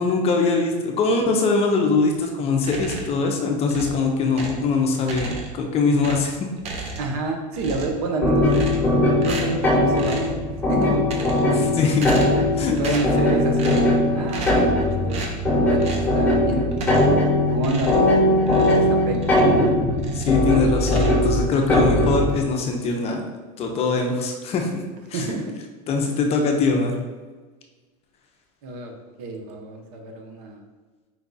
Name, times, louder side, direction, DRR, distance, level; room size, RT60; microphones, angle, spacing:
voice 1, 0.0-6.5 6.8-6.9 11.5-12.1 12.6-12.8 20.1-23.2 23.6-24.8 25.1-25.3 25.9-26.9, left 4 dB, 30° left, 3 dB, 0.6 m, -22 dB
sound 1, 2.6-3.2 3.7-4.7 5.0-5.7 6.0-7.3 7.5-8.1 8.5-8.9 9.2-9.6 10.0-10.4 10.9-11.6 11.9-12.5 12.8-13.2 13.6-14.0 14.3-14.7 15.1-15.4 15.8-16.1 16.7-17.2 17.6-19.6 19.9-20.5 20.8-21.7, right 3 dB, 30° right, 0.7 m, -34 dB
voice 2, 7.0-8.5 9.2-10.4 10.7-11.6 12.8-14.7 15.0-15.2 15.7-16.9 17.5-19.3 25.1-25.4 28.6-28.9 29.2-30.6, right 2 dB, 70° right, 2 dB, 0.9 m, -28 dB
sound 2, 8.2-22.4, left 1 dB, 5° left, 1.1 m, -20 dB
4.6 x 2.3 x 3.9 m, 1.3 s
supercardioid pair, 135°, 20 cm